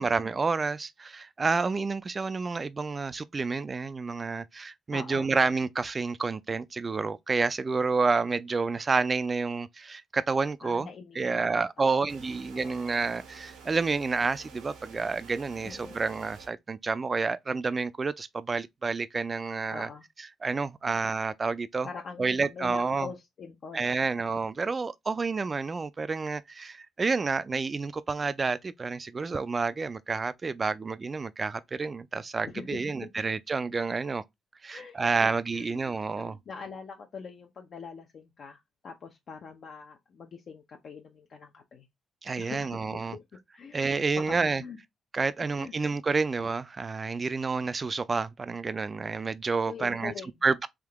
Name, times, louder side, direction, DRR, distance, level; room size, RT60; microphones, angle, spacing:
voice 1, 0.0-10.9 11.2-19.9 20.2-21.9 22.2-23.1 23.7-34.2 34.6-36.4 42.2-43.2 43.7-44.6 45.1-50.1 50.4-50.7, right 4 dB, 35° right, 0.3 m, -29 dB
voice 2, 4.9-5.4 10.6-12.1 12.5-12.8 15.6-16.0 19.7-20.0 21.8-24.1 32.4-33.1 34.7-35.8 36.2-41.9 42.4-43.2 43.5-43.8 44.2-44.8 45.6-45.7 49.7-50.3, left 5 dB, 60° left, 0.6 m, -43 dB
sound 1, 12.1-16.5, right 5 dB, 90° right, 1.1 m, -49 dB
3.6 x 2.8 x 3.5 m
cardioid pair, 80°, 0 cm